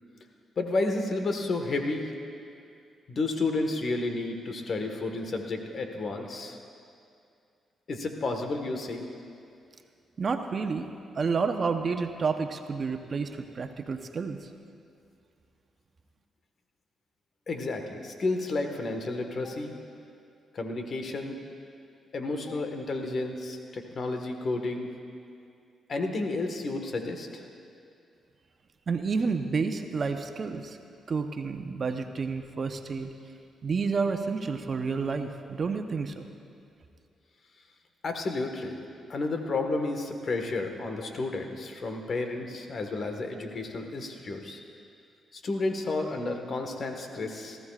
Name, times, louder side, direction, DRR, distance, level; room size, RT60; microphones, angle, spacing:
voice 1, 0.6-2.1 3.1-6.6 7.9-9.1 17.5-19.7 20.5-21.4 22.1-24.9 25.9-27.4 38.0-38.8 39.1-44.6 45.3-47.6, left 3 dB, 55° left, 4 dB, 1.6 m, -31 dB
voice 2, 10.2-10.9 11.1-14.5 28.9-30.8 31.1-33.1 33.6-36.3, right 5 dB, 50° right, 7 dB, 0.9 m, -30 dB
19.0 x 14.5 x 2.5 m, 2.4 s
supercardioid pair, 50°, 0 cm